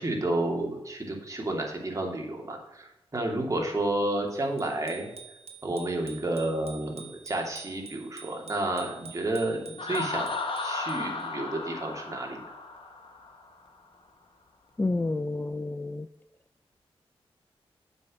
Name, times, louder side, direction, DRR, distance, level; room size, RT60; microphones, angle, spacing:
voice 1, 0.0-5.1 5.6-10.3 10.6-12.4, right 1 dB, 35° right, 1 dB, 2.8 m, -31 dB
Bicycle bell, 4.6-11.2, right 6 dB, 85° right, 1.4 m, -48 dB
Laughter, 9.8-13.5, left 3 dB, 65° left, 1.6 m, -34 dB
voice 2, 14.8-16.1, left 2 dB, 20° left, 13 dB, 0.4 m, -29 dB
7.5 x 6.2 x 6.3 m, 0.96 s
cardioid pair, 60°, 10 cm